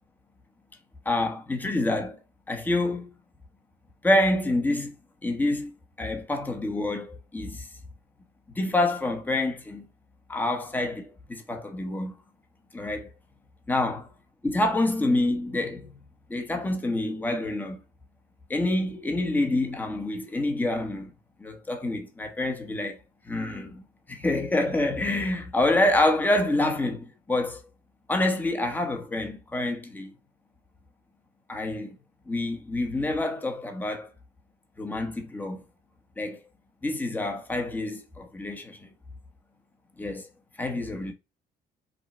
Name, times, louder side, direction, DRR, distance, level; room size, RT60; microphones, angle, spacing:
voice 1, 1.0-2.2 2.5-3.1 4.0-4.9 5.2-5.7 6.0-7.7 8.5-9.9 10.3-12.1 12.7-13.1 13.7-14.0 14.4-15.9 16.3-17.8 18.5-21.1 21.4-23.0 23.2-27.6 28.1-30.1 31.5-32.0 32.3-34.1 34.8-35.6 36.2-36.4 36.8-38.9 40.0-40.3 40.6-41.1, left 2 dB, 10° left, 1.0 m, -27 dB
5.3 x 2.3 x 4.2 m
cardioid pair, 110°, 17 cm